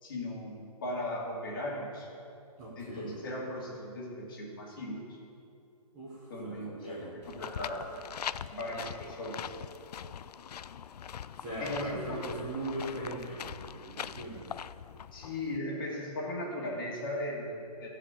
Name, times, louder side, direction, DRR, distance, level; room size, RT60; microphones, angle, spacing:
voice 1, 0.0-2.1 2.8-5.2 6.3-8.0 8.5-9.5 11.6-12.4 15.1-17.9, left 1 dB, 35° left, -3 dB, 2.3 m, -37 dB
voice 2, 2.6-3.2 5.9-7.1 11.3-14.6, right 1 dB, 10° right, -8 dB, 0.8 m, -40 dB
sound 1, 7.2-15.6, left 8 dB, 80° left, 0.4 m, -42 dB
14.0 x 5.0 x 8.3 m, 2.6 s
hypercardioid pair, 180°, 20 cm